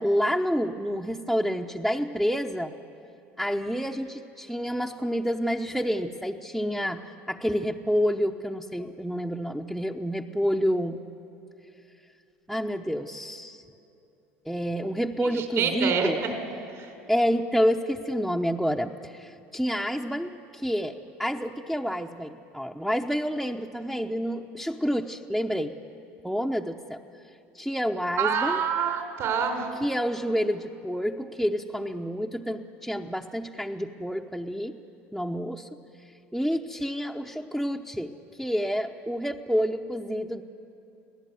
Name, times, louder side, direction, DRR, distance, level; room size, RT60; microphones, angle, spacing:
voice 1, 0.0-2.7 3.4-11.0 12.5-13.6 14.4-16.2 17.1-25.7 26.2-27.0 27.5-28.6 29.8-34.8 35.1-35.7 36.3-40.4, equal, 5° right, 0 dB, 0.9 m, -28 dB
voice 2, 15.6-16.3 28.2-29.7, right 7 dB, 60° right, 4 dB, 4.9 m, -26 dB
25.5 x 17.0 x 9.4 m, 2.8 s
supercardioid pair, 95°, 5 cm